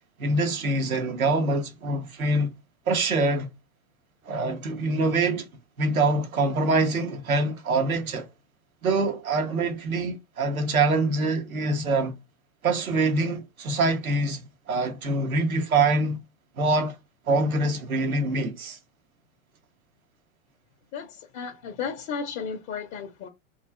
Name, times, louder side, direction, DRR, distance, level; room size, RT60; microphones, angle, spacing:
voice 1, 0.2-2.5 2.9-3.5 4.3-5.5 5.8-8.3 8.8-12.1 12.6-16.2 16.6-16.9 17.3-18.8, right 2 dB, 85° right, 0.9 m, -25 dB
voice 2, 20.9-23.3, left 6 dB, 30° left, 0.4 m, -34 dB
3.1 x 2.3 x 2.2 m
hypercardioid pair, 100°, 41 cm